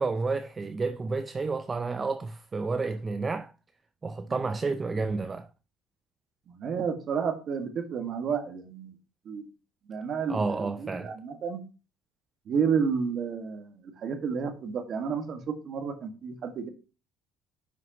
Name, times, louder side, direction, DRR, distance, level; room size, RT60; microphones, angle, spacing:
voice 1, 0.0-3.5 4.0-5.5 10.3-11.1, right 4 dB, 20° right, 0.5 m, -30 dB
voice 2, 6.5-8.9 9.2-9.5 9.9-11.6 12.4-16.7, right 6 dB, 45° right, 1.7 m, -31 dB
10.5 x 6.3 x 3.0 m
cardioid pair, 120°, 0 cm